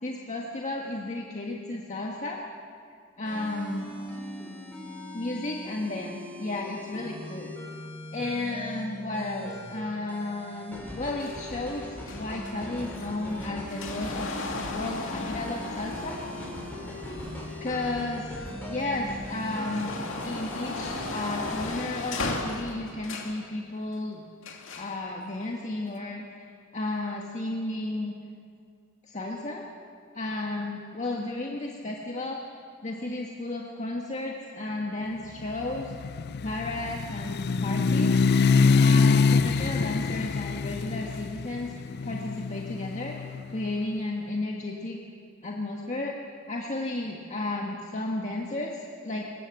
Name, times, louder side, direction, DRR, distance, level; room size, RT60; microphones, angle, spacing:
voice 1, 0.0-2.4 3.2-3.8 5.1-7.5 8.1-14.3 14.7-16.2 17.6-19.9 20.2-24.2 24.8-28.1 29.0-29.7 30.1-32.4 32.8-36.0 36.4-38.1 38.8-41.7 42.0-43.2 43.5-45.0 45.4-46.2 46.5-49.2, left 2 dB, 35° left, 0 dB, 1.6 m, -33 dB
sound 1, 3.2-21.8, left 1 dB, 10° left, 5.3 m, -39 dB
sound 2, 11.2-18.4 18.9-23.5 24.4-25.0 25.9-26.0, left 2 dB, 65° left, 2.5 m, -37 dB
sound 3, 35.5-43.5, left 4 dB, 50° left, 0.4 m, -24 dB
23.5 x 20.0 x 7.2 m, 2.3 s
head